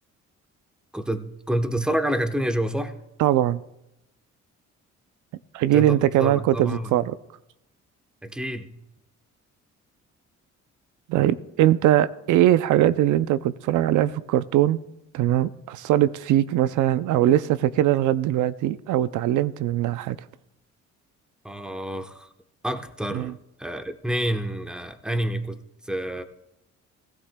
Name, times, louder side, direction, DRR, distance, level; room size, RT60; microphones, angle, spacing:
voice 1, 0.9-2.9 5.7-6.9 8.2-8.8 21.4-22.3 22.6-26.2, right 1 dB, 5° right, 0.9 m, -28 dB
voice 2, 3.2-3.6 5.5-7.2 11.1-14.8 15.1-20.2 23.1-23.3, right 13 dB, 80° right, 0.5 m, -21 dB
17.0 x 16.0 x 2.2 m
cardioid pair, 90°, 30 cm